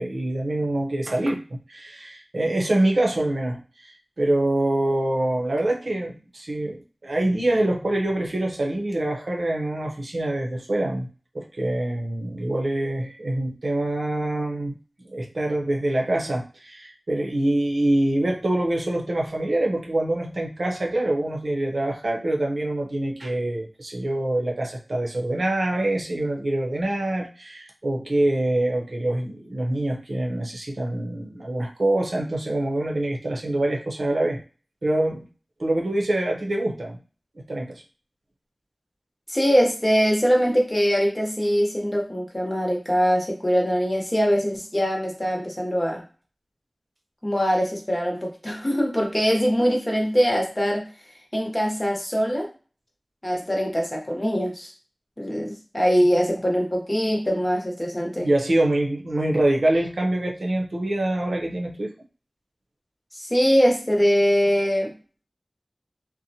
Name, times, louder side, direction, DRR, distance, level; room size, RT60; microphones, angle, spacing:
voice 1, 0.0-11.1 11.3-14.7 15.0-34.4 34.8-35.2 35.6-37.0 37.5-37.8 58.2-61.9, right 1 dB, 75° right, -1 dB, 0.6 m, -25 dB
voice 2, 39.3-46.0 47.2-50.9 51.3-52.5 53.2-54.7 55.2-58.3 63.2-64.9, equal, 30° left, 0 dB, 0.9 m, -22 dB
2.7 x 2.1 x 2.7 m, 0.37 s
wide cardioid pair, 45°, 0 cm